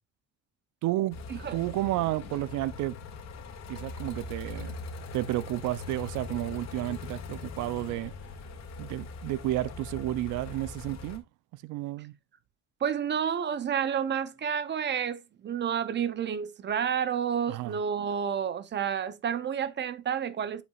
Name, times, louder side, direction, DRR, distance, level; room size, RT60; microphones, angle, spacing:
voice 1, 0.8-1.2 1.5-3.0 3.7-4.8 5.1-8.1 8.8-11.2 11.5-12.1 17.5-17.8, right 16 dB, 85° right, 0.6 m, -31 dB
sound 1, 1.1-11.2, left 4 dB, 65° left, 2.1 m, -41 dB
voice 2, 12.8-20.6, right 8 dB, 35° right, 0.6 m, -30 dB
8.2 x 8.1 x 2.4 m
cardioid pair, 140°, 30 cm